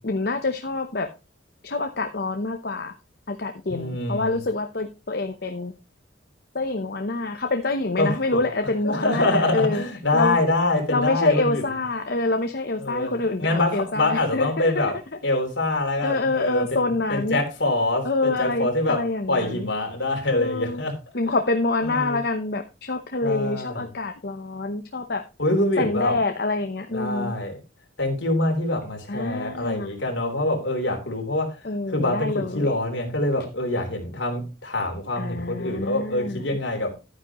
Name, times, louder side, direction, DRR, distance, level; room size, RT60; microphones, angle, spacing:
voice 1, 0.0-1.1 1.6-2.9 3.3-5.7 6.5-9.8 10.1-10.4 10.9-14.9 16.0-17.4 18.0-19.7 20.3-20.8 21.1-25.2 25.8-27.3 29.1-29.9 31.6-32.7 35.2-36.6, left 3 dB, 55° left, 0.9 m, -26 dB
voice 2, 3.7-4.4 8.0-8.4 8.8-11.7 12.8-13.1 13.4-14.9 15.2-21.0 21.8-22.2 23.2-23.9 25.4-26.2 26.9-27.5 28.0-31.6 31.9-36.9, left 2 dB, 70° left, 3.5 m, -25 dB
11.0 x 9.7 x 3.0 m
head